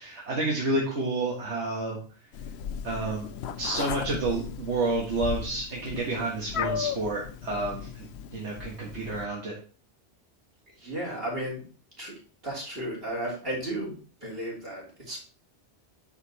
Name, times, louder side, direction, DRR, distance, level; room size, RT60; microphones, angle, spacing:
voice 1, 0.0-2.0 2.8-3.3 3.6-8.1 8.3-9.5, right 2 dB, 80° right, -2 dB, 1.8 m, -30 dB
Meow, 2.3-9.2, left 8 dB, 75° left, 0.9 m, -36 dB
voice 2, 10.7-11.6 12.0-12.2 12.4-15.2, right 1 dB, 60° right, -3 dB, 3.3 m, -34 dB
6.8 x 5.8 x 4.2 m, 0.38 s
omnidirectional pair, 1.2 m